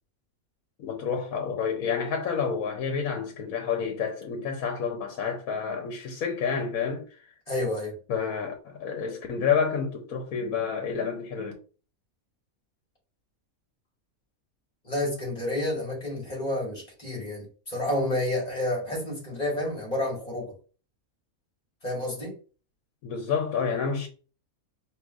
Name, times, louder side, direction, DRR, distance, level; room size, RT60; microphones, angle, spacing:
voice 1, 0.8-7.0 8.1-11.5 23.0-24.1, left 6 dB, 75° left, 1.2 m, -29 dB
voice 2, 7.5-8.0 14.8-20.5 21.8-22.3, left 1 dB, 30° left, 1.8 m, -30 dB
4.7 x 3.0 x 2.4 m
omnidirectional pair, 1.5 m